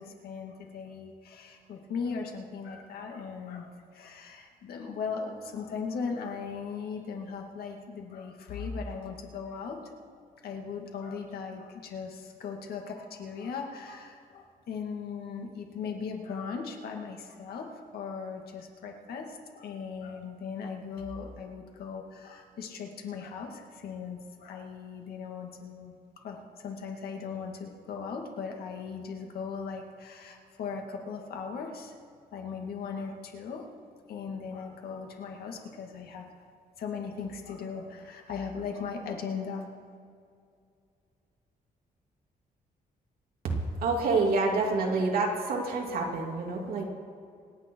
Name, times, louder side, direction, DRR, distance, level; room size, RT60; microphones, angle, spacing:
voice 1, 0.0-10.2 10.4-25.9 26.2-31.9 32.3-33.7 34.1-36.3 36.8-39.7, left 5 dB, 90° left, 2 dB, 2.2 m, -38 dB
voice 2, 43.8-46.8, right 3 dB, 75° right, 0 dB, 2.6 m, -27 dB
27.0 x 9.3 x 4.6 m, 2.3 s
wide cardioid pair, 160°, 15 cm